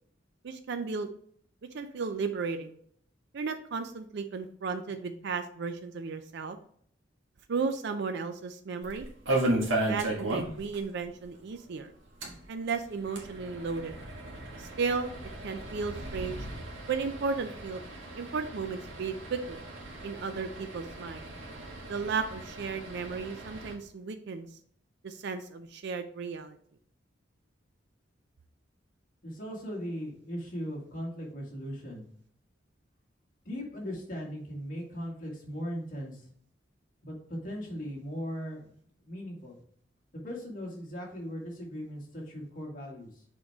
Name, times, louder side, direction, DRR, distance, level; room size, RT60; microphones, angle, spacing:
voice 1, 0.4-1.1 1.7-2.7 3.3-6.6 7.5-9.1 9.9-11.9 12.5-14.0 14.6-15.1 15.4-16.5 16.9-17.8 18.1-19.6 20.0-21.3 21.9-24.5 25.0-26.6, right 5 dB, 60° right, 8 dB, 0.5 m, -34 dB
sound 1, 8.8-10.8 11.0-11.1 11.4-11.5 12.1-23.7, right 1 dB, 85° right, 1.6 m, -36 dB
voice 2, 29.2-32.0 33.5-36.3 37.0-38.7 39.0-39.6 40.2-43.2, equal, 45° left, -2 dB, 2.0 m, -38 dB
6.4 x 4.6 x 3.5 m, 0.62 s
head